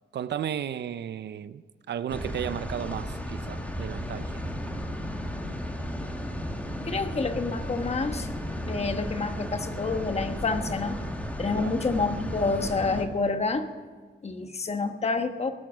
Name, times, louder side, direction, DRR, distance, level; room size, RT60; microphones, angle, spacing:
voice 1, 0.1-4.4 11.5-11.7, right 9 dB, 70° right, 0.6 m, -34 dB
sound 1, 2.1-13.1, equal, 10° left, 1.5 m, -34 dB
voice 2, 6.8-8.3 8.7-11.0 11.4-13.7 14.2-15.5, left 4 dB, 35° left, 1.2 m, -28 dB
18.5 x 10.5 x 6.2 m
cardioid pair, 115°, 19 cm